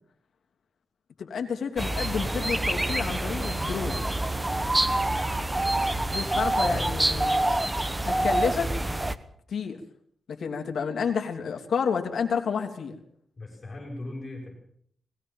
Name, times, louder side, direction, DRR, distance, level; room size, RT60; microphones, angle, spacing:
voice 1, 1.2-4.0 6.1-7.4 8.0-8.7 9.5-9.8 10.3-13.0, left 6 dB, 65° left, 4 dB, 3.1 m, -30 dB
sound 1, 1.8-9.2, right 1 dB, 15° right, 1.1 m, -26 dB
sound 2, 4.6-6.8, left 5 dB, 85° left, 1.7 m, -51 dB
voice 2, 6.6-7.5 13.4-14.5, left 2 dB, 30° left, -3 dB, 7.4 m, -39 dB
20.0 x 17.5 x 7.4 m, 0.65 s
wide cardioid pair, 125°, 0 cm